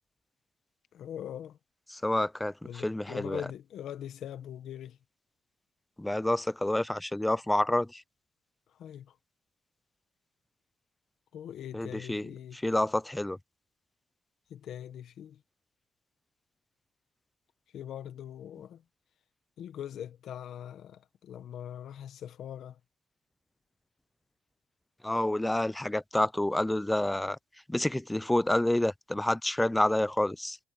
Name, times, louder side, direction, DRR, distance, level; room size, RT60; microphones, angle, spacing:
voice 1, 0.9-1.6 2.6-5.0 8.8-9.2 11.3-12.6 14.5-15.4 17.7-18.8 19.6-22.8, left 10 dB, 70° left, 1.6 m, -42 dB
voice 2, 1.9-2.5 2.8-3.4 6.0-8.0 11.7-12.3 12.6-13.4 25.0-27.4 27.7-30.6, left 1 dB, 10° left, 0.5 m, -28 dB
cardioid pair, 90°, 0 cm